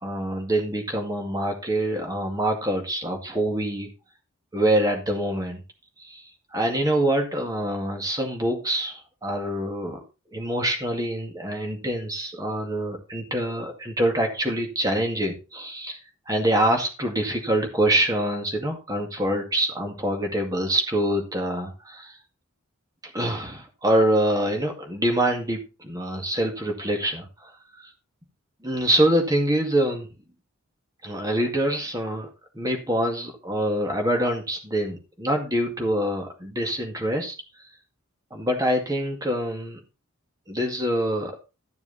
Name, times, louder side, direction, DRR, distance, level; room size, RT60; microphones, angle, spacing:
voice 1, 0.0-3.9 4.5-5.6 6.0-6.2 6.5-10.0 10.3-16.0 16.3-22.2 23.1-27.9 28.6-30.1 31.0-32.3 32.5-37.3 38.3-39.8 40.5-41.3, right 1 dB, 15° right, 3 dB, 2.1 m, -25 dB
13.0 x 6.9 x 4.1 m, 0.29 s
head